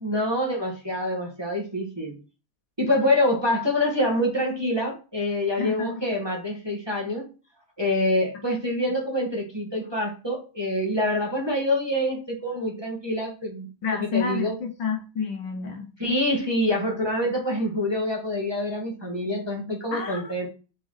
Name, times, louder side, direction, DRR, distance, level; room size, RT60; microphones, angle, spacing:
voice 1, 0.0-2.2 2.8-7.3 7.8-14.6 16.0-20.5, left 1 dB, 10° right, -2 dB, 1.9 m, -26 dB
voice 2, 5.6-6.0 13.8-15.9 19.9-20.3, left 6 dB, 65° left, 4 dB, 1.6 m, -29 dB
6.0 x 4.8 x 5.7 m, 0.34 s
omnidirectional pair, 2.3 m